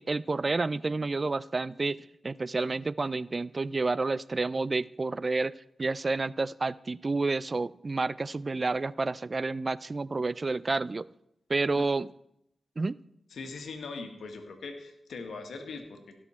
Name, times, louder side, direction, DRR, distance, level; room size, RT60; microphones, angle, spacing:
voice 1, 0.0-2.0 2.2-5.5 5.8-11.1 11.5-12.1 12.8-13.0, right 3 dB, 45° right, 20 dB, 0.3 m, -29 dB
voice 2, 13.3-16.1, left 4 dB, 80° left, 5 dB, 1.5 m, -41 dB
17.0 x 6.3 x 4.3 m, 0.78 s
cardioid pair, 40°, 0 cm